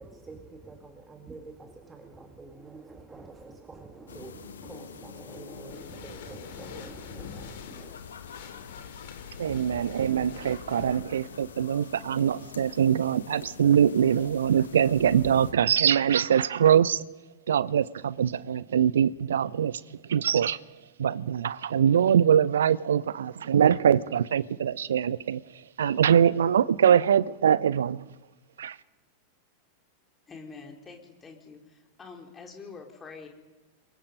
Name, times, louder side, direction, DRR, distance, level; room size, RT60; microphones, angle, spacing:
voice 1, 0.0-7.9, right 3 dB, 15° right, 2.1 m, -47 dB
sound 1, 4.1-15.5, left 7 dB, 65° left, 1.6 m, -45 dB
sound 2, 5.7-11.0, left 8 dB, 50° left, 3.1 m, -46 dB
voice 2, 9.4-17.0 17.5-19.8 20.1-20.6 21.0-25.4 25.8-28.0 28.6-28.8, right 8 dB, 65° right, 0.6 m, -23 dB
voice 3, 30.3-33.3, left 4 dB, 20° left, 3.8 m, -46 dB
28.0 x 22.5 x 5.4 m
figure-of-eight pair, 90°, 0 cm